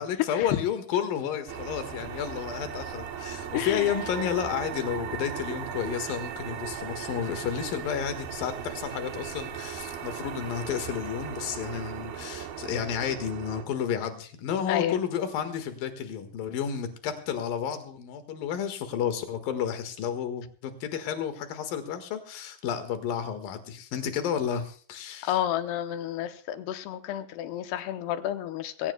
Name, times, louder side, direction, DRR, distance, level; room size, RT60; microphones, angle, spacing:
voice 1, 0.0-25.3, left 8 dB, 65° left, 8 dB, 3.1 m, -31 dB
sound 1, 1.5-13.6, right 8 dB, 70° right, 2.9 m, -37 dB
voice 2, 3.5-3.9 14.7-15.0 25.2-28.9, left 12 dB, 85° left, 9 dB, 2.8 m, -30 dB
22.0 x 17.5 x 2.2 m, 0.44 s
omnidirectional pair, 4.7 m